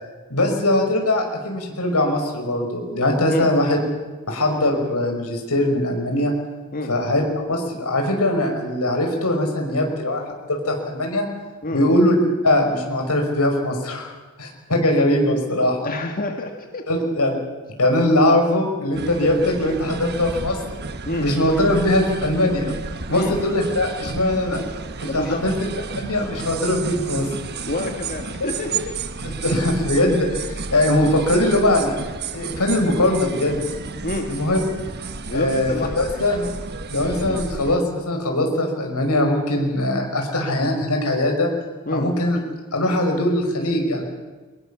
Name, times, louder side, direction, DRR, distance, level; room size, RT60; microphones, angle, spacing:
voice 1, 0.3-3.8 4.3-6.3 6.9-7.2 7.5-11.3 11.7-12.2 12.4-14.1 14.4-15.9 16.9-17.4 17.8-20.6 21.2-22.7 23.1-24.6 25.1-25.5 26.0-27.3 28.4-28.5 29.2-32.0 32.3-33.6 34.3-34.6 35.3-36.5 36.9-41.5 41.9-42.4 42.7-44.0, left 1 dB, 90° left, 3 dB, 5.7 m, -21 dB
voice 2, 15.8-16.8 21.1-21.3 23.1-23.4 25.0-25.4 27.6-28.7 34.0-34.3 35.3-36.2 37.2-37.4 41.9-42.1, left 2 dB, 40° left, 3 dB, 1.9 m, -28 dB
sound 1, 18.9-37.8, right 4 dB, 50° right, 1.3 m, -32 dB
24.0 x 21.5 x 7.1 m, 1.3 s
head